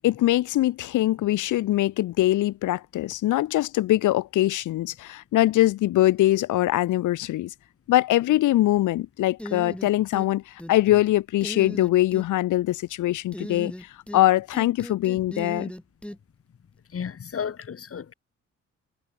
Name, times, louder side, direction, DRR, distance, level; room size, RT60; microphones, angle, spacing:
voice 1, 0.0-7.5 7.9-13.7 14.1-15.7, left 15 dB, 85° left, 2.5 m, -22 dB
sound 1, 9.4-10.3 10.6-11.0 11.4-12.3 13.3-14.3 14.5-16.2, left 1 dB, 5° left, 3.2 m, -37 dB
voice 2, 16.9-18.1, left 7 dB, 50° left, 5.0 m, -33 dB
cardioid pair, 90°, 30 cm